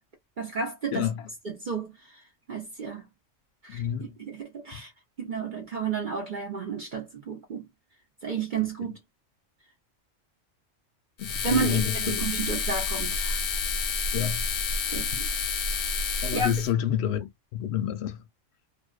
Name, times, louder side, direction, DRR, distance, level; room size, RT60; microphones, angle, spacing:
voice 1, 0.4-1.1 1.4-1.9 2.5-3.0 3.6-4.9 5.2-7.7 8.2-8.9 11.4-13.4 14.9-15.3 16.3-16.5, right 5 dB, 50° right, 0.7 m, -31 dB
voice 2, 0.9-1.3 3.7-4.2 8.8-9.0 11.2-12.3 14.1-14.5 16.2-18.2, left 10 dB, 65° left, 0.8 m, -29 dB
sound 1, 11.2-16.7, left 5 dB, 90° left, 1.0 m, -29 dB
2.3 x 2.3 x 2.3 m
omnidirectional pair, 1.3 m